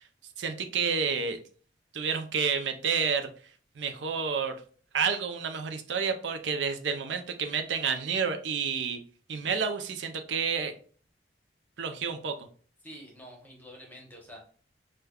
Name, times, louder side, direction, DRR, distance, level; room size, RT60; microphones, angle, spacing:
voice 1, 0.4-1.4 1.9-3.3 3.8-4.5 4.9-9.0 9.3-10.7 11.8-12.4, right 6 dB, 80° right, 7 dB, 0.5 m, -29 dB
voice 2, 12.8-14.4, equal, 10° left, 0 dB, 0.8 m, -47 dB
4.9 x 2.2 x 2.2 m, 0.43 s
head